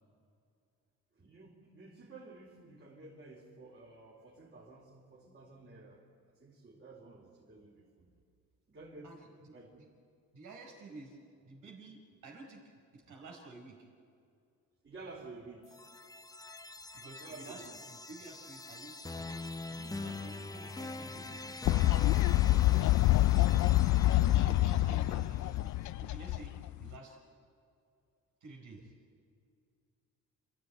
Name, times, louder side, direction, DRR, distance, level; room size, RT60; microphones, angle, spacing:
voice 1, 1.1-6.1 6.4-8.1 8.7-9.2 9.5-9.8 14.8-15.9 17.2-17.8 22.5-23.2 28.8-28.9, right 3 dB, 40° right, -5 dB, 4.3 m, -52 dB
voice 2, 9.0-9.9 10.3-11.2 11.4-12.6 12.9-13.8 16.6-22.3 24.1-25.7 26.0-27.2 28.4-28.9, right 3 dB, 85° right, 1 dB, 5.0 m, -52 dB
sound 1, 15.6-25.6, left 3 dB, 10° left, 0.7 m, -45 dB
Fowl, 21.7-26.9, left 16 dB, 70° left, 0.5 m, -26 dB
28.5 x 13.0 x 9.5 m, 2.4 s
cardioid pair, 90°, 30 cm